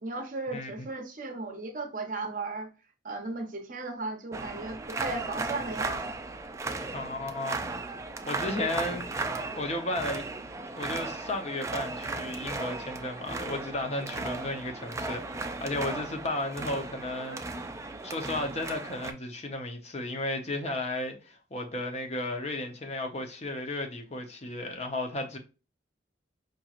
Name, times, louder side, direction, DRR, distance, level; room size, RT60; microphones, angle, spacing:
voice 1, 0.0-2.7 3.0-6.1 8.6-8.8, right 3 dB, 45° right, 0.8 m, -36 dB
sound 1, 4.3-19.1, right 3 dB, 15° right, 0.3 m, -36 dB
voice 2, 6.9-7.6 8.3-9.1 9.6-10.2 10.8-17.7 18.0-25.4, left 2 dB, 35° left, 0.7 m, -34 dB
5.2 x 3.0 x 2.4 m
head